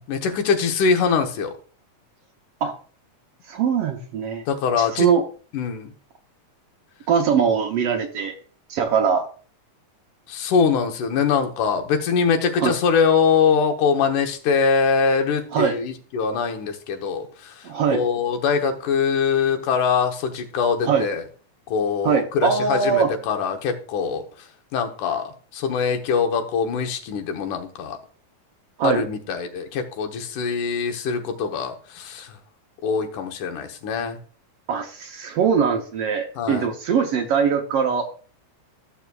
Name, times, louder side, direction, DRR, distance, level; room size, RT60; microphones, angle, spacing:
voice 1, 0.1-1.5 4.5-5.1 5.5-5.9 10.3-21.2 21.7-24.2 24.7-28.0 28.8-32.4 32.8-34.2 36.4-36.7, left 6 dB, 85° left, 5 dB, 2.6 m, -23 dB
voice 2, 3.5-4.4 4.8-5.2 7.1-8.3 8.7-9.3 12.6-12.7 15.5-15.8 17.6-18.0 20.8-21.1 22.0-23.1 28.8-29.0 34.7-38.1, right 6 dB, 70° right, 4 dB, 1.5 m, -21 dB
14.0 x 7.0 x 2.3 m, 0.41 s
omnidirectional pair, 3.4 m